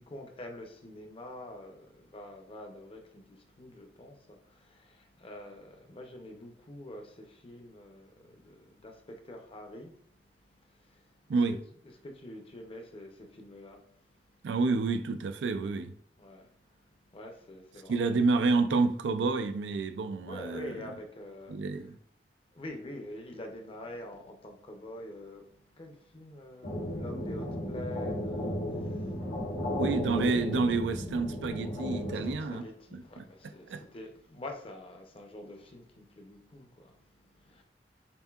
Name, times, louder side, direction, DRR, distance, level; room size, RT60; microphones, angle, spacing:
voice 1, 0.0-11.4 12.0-14.5 16.2-18.2 20.2-21.8 22.5-29.8 30.1-30.9 31.6-37.6, left 1 dB, 30° left, 0.7 m, -47 dB
voice 2, 14.4-16.0 17.9-20.8 21.5-22.0 29.6-32.7 32.9-33.2 33.7-33.8, right 3 dB, 80° right, 0.4 m, -29 dB
sound 1, 26.6-32.3, left 1 dB, 90° left, 1.5 m, -34 dB
6.9 x 2.7 x 2.3 m
head